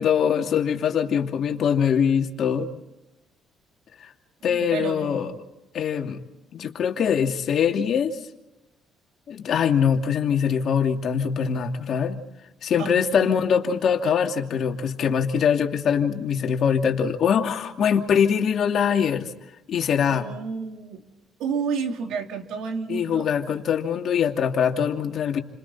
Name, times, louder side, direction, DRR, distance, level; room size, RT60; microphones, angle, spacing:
voice 1, 0.0-2.7 4.0-4.1 4.4-5.3 5.7-6.2 6.5-8.2 9.3-12.2 12.6-19.3 19.7-20.3 22.9-25.4, left 7 dB, 55° left, 3 dB, 2.7 m, -23 dB
voice 2, 4.5-5.4 12.8-13.4 20.1-21.1 21.4-23.3, right 5 dB, 80° right, 3 dB, 3.5 m, -31 dB
30.0 x 26.5 x 4.2 m, 0.97 s
cardioid pair, 120°, 0 cm